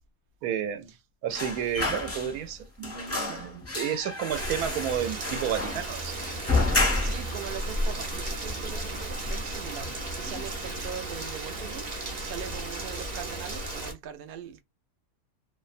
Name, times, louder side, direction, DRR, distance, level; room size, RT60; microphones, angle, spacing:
voice 1, 0.4-0.9 1.2-6.2, right 9 dB, 85° right, 1.1 m, -31 dB
sound 1, 1.3-2.6 2.8-7.4 7.7-7.8 8.1-8.9 9.3-9.5 9.8-10.5 10.8-10.9, left 2 dB, 15° left, 0.5 m, -30 dB
Rain, 4.3-13.9, right 1 dB, 35° right, 0.8 m, -34 dB
voice 2, 6.7-11.9 12.2-14.6, right 9 dB, 65° right, 0.5 m, -41 dB
2.6 x 2.1 x 2.4 m
omnidirectional pair, 1.6 m